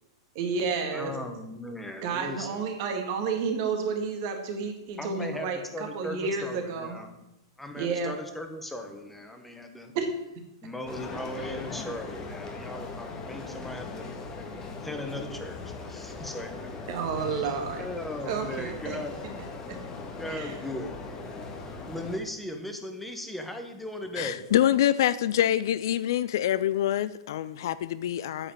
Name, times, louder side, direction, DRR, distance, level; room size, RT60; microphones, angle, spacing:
voice 1, 0.4-1.2 2.0-7.0 7.8-8.1 9.9-10.1 16.9-17.9 18.3-19.0 19.7-19.8 20.3-20.5, right 5 dB, 50° right, 1.9 m, -31 dB
voice 2, 0.9-2.6 5.0-7.2 7.6-9.9 10.6-14.1 14.8-16.7 17.3-19.3 20.2-21.0 21.9-24.5, left 1 dB, 5° left, 1.2 m, -38 dB
sound 1, 10.9-22.2, left 3 dB, 25° left, 1.5 m, -39 dB
voice 3, 24.2-28.5, left 11 dB, 60° left, 0.4 m, -25 dB
8.9 x 5.1 x 7.0 m
hypercardioid pair, 105°, 2 cm